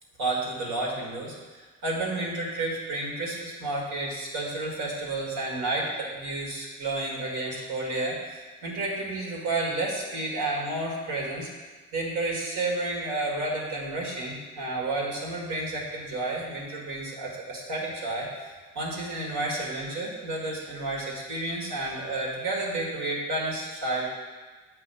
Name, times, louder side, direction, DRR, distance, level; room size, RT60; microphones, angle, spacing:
voice 1, 0.2-11.5 11.9-24.1, right 2 dB, 90° right, -3 dB, 1.7 m, -31 dB
7.6 x 2.8 x 5.5 m, 1.3 s
cardioid pair, 90°, 30 cm